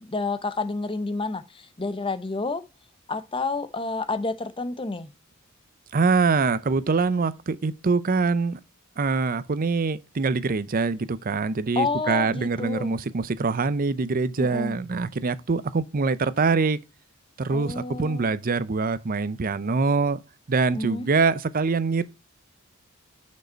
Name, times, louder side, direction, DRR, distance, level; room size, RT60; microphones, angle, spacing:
voice 1, 0.0-2.6 3.1-5.1 11.8-13.0 14.4-14.8 17.5-18.3 20.7-21.1, left 3 dB, 25° left, 0.8 m, -29 dB
voice 2, 5.9-8.6 9.0-16.8 17.4-20.2 20.5-22.0, right 4 dB, 40° right, 0.5 m, -24 dB
6.5 x 5.3 x 4.4 m
head